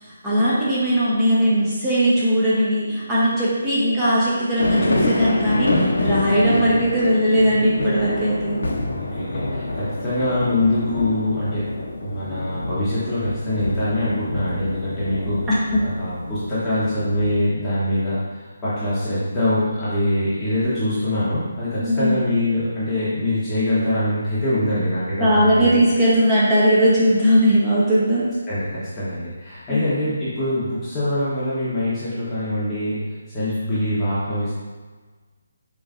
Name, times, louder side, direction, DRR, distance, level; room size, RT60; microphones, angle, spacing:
voice 1, 0.0-8.6 15.5-15.8 21.8-22.2 25.2-28.2 29.7-29.9, equal, 10° right, -10 dB, 0.8 m, -19 dB
sound 1, 4.6-17.3, left 1 dB, 80° left, 0.7 m, -27 dB
voice 2, 8.8-11.7 12.0-25.7 28.5-33.0 33.3-34.5, left 1 dB, 15° left, -13 dB, 1.0 m, -24 dB
4.9 x 3.1 x 2.4 m, 1.4 s
hypercardioid pair, 160°, 0 cm